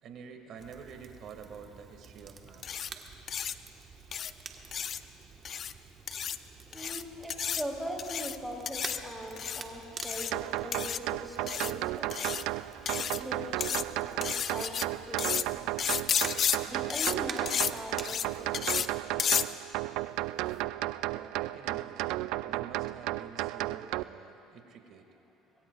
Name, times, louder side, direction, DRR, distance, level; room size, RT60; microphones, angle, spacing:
voice 1, 0.0-2.9 21.1-25.1, right 6 dB, 55° right, 4 dB, 1.9 m, -48 dB
Crackle, 0.6-18.8, right 5 dB, 40° right, 1.3 m, -49 dB
sound 1, 2.6-2.9 3.3-3.5 4.1-4.3 4.7-5.0 5.4-5.7 6.1-6.4 6.7-7.0 7.3-7.6 8.0-8.4 8.7-9.0 9.4-9.6 10.0-10.3 10.7-11.0 11.5-11.7 12.1-12.4 12.9-13.2 13.6-13.8 14.2-14.8 15.2-15.4 15.8-16.6 16.9-17.1 17.5-17.7 18.0-18.3 18.5-18.9 19.2-19.4, left 8 dB, 45° left, 0.5 m, -31 dB
voice 2, 6.6-12.4 13.0-13.7 14.0-15.6 16.6-18.5, equal, ahead, -2 dB, 3.2 m, -41 dB
sound 2, 10.3-24.0, right 16 dB, 75° right, 0.3 m, -34 dB
26.0 x 21.5 x 2.4 m, 3.0 s
supercardioid pair, 95°, 0 cm